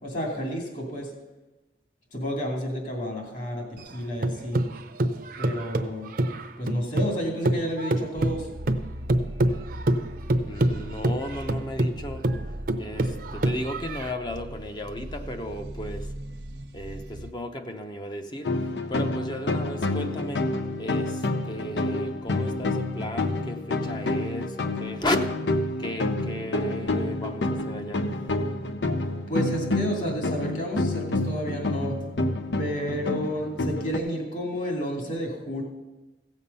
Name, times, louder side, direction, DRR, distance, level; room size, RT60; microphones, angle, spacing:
voice 1, 0.0-1.1 2.1-4.6 5.4-6.1 6.6-8.5 29.3-32.0 32.6-35.6, equal, 45° left, 0 dB, 2.7 m, -31 dB
sound 1, 3.8-7.2 7.4-14.1, right 1 dB, 55° right, 0.7 m, -26 dB
sound 2, 8.2-17.3, equal, 75° right, 1.0 m, -39 dB
voice 2, 10.5-12.2 12.8-16.1 16.7-20.4 20.8-25.2 25.8-28.0, left 1 dB, 25° left, 5 dB, 0.8 m, -34 dB
sound 3, 18.4-34.0, left 2 dB, 85° left, 0.8 m, -28 dB
16.0 x 7.2 x 5.5 m, 1.1 s
head